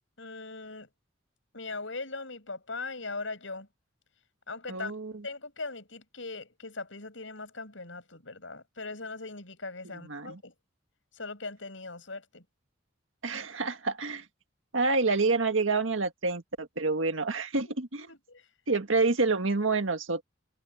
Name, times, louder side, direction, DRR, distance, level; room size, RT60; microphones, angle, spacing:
voice 1, 0.2-0.9 1.5-3.7 4.5-4.9 5.2-10.5 11.1-12.4 17.6-17.8 18.1-18.5, left 3 dB, 70° left, 6.6 m, -40 dB
voice 2, 4.7-5.1 10.1-10.4 13.2-14.2 14.7-17.9 18.7-20.2, right 3 dB, 80° right, 1.8 m, -28 dB
head